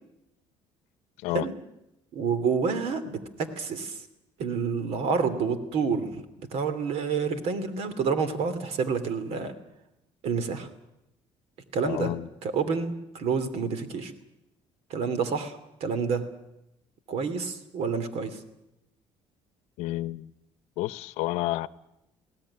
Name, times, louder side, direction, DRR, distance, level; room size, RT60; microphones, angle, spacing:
voice 1, 2.1-4.0 4.4-9.5 10.2-10.7 11.7-12.1 12.4-14.1 14.9-16.2 17.1-18.4, right 5 dB, 70° right, 13 dB, 2.8 m, -28 dB
voice 2, 11.8-12.3 19.8-20.3 20.8-21.7, left 17 dB, 90° left, 17 dB, 0.8 m, -30 dB
20.5 x 17.5 x 10.0 m, 0.88 s
cardioid pair, 110°, 11 cm